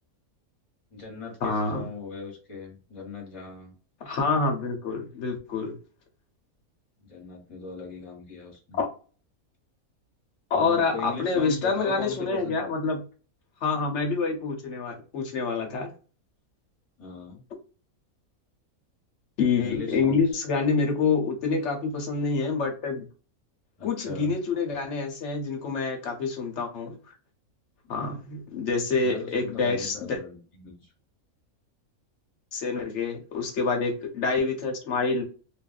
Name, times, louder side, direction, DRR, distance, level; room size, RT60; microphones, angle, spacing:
voice 1, 0.9-3.7 7.0-8.8 10.5-12.6 17.0-17.4 19.6-20.2 23.8-24.3 27.8-28.0 29.0-30.9, left 5 dB, 25° left, -1 dB, 1.2 m, -39 dB
voice 2, 1.4-1.9 4.0-5.7 8.7-8.9 10.5-13.0 13.6-15.9 19.4-23.1 23.8-27.0 27.9-30.2 32.5-35.2, left 4 dB, 60° left, 3 dB, 1.0 m, -27 dB
3.0 x 2.5 x 2.4 m, 0.36 s
omnidirectional pair, 1.5 m